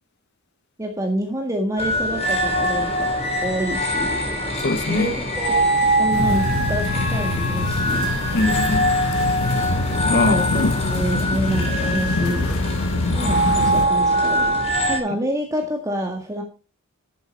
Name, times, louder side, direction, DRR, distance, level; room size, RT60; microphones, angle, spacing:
voice 1, 0.8-3.1 3.4-4.2 4.9-8.2 10.1-12.7 13.1-14.6 14.8-16.4, right 1 dB, 15° right, 1.8 m, -28 dB
sound 1, 1.8-15.0, right 1 dB, 30° left, 4.1 m, -23 dB
voice 2, 4.5-5.1 8.3-8.9 9.3-9.6 10.0-10.5, left 3 dB, 50° left, 0.7 m, -23 dB
sound 2, 6.1-13.9, left 2 dB, 70° left, 1.1 m, -24 dB
11.5 x 7.6 x 5.3 m
head